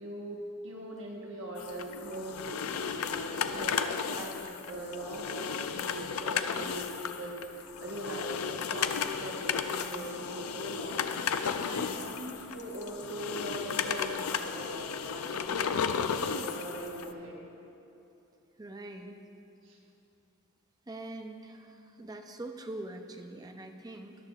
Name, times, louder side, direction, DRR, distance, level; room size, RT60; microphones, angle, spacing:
voice 1, 0.0-17.4 19.6-19.8, right 1 dB, 60° right, -2 dB, 1.2 m, -41 dB
sound 1, 1.6-17.1, left 7 dB, 85° left, 0.4 m, -34 dB
voice 2, 11.7-12.0 18.6-19.2 20.9-24.2, right 2 dB, 15° right, 4 dB, 0.5 m, -43 dB
13.5 x 11.0 x 2.4 m, 2.9 s
head